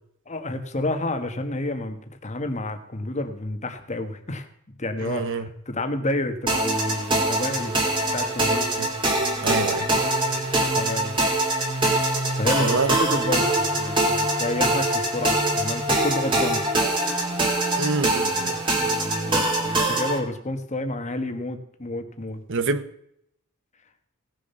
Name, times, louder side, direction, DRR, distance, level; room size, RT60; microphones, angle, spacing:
voice 1, 0.3-4.5 4.8-7.8 8.1-8.7 10.3-11.4 12.3-16.6 18.7-22.4, left 1 dB, 30° left, 7 dB, 1.4 m, -30 dB
voice 2, 5.0-5.5 8.8-8.9 9.4-9.9 12.6-12.9 17.8-18.5 22.5-22.8, right 3 dB, 55° right, 13 dB, 1.0 m, -26 dB
sound 1, 6.5-20.2, right 1 dB, 20° right, 2.7 m, -23 dB
17.5 x 6.9 x 5.6 m, 0.74 s
head